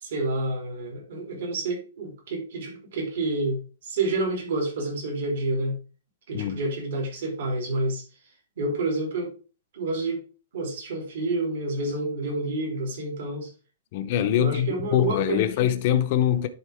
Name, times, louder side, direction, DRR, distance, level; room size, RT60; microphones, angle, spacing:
voice 1, 0.0-5.8 6.3-8.0 8.6-9.3 9.7-10.2 10.5-13.5 14.4-15.6, right 2 dB, 60° right, 3.4 m, -29 dB
voice 2, 13.9-16.5, left 10 dB, 35° left, 0.7 m, -23 dB
11.0 x 3.9 x 3.5 m
hypercardioid pair, 170°, 0 cm